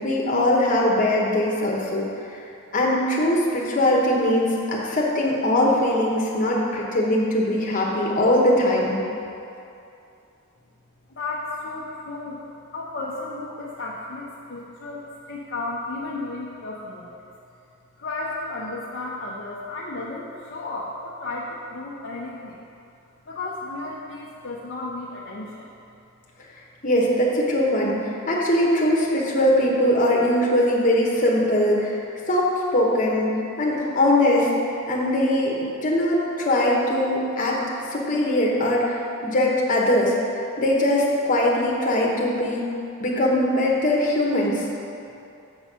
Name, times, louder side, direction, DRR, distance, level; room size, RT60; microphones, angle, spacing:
voice 1, 0.0-2.1 2.7-9.0 26.8-32.5 32.7-34.5 34.9-35.6 35.8-37.6 37.9-40.3 40.6-42.7 43.0-44.6, left 1 dB, 35° left, -3 dB, 1.1 m, -21 dB
voice 2, 11.2-17.2 18.0-22.6 23.3-25.7, left 2 dB, 55° left, -5 dB, 0.6 m, -33 dB
7.1 x 4.2 x 6.1 m, 2.7 s
head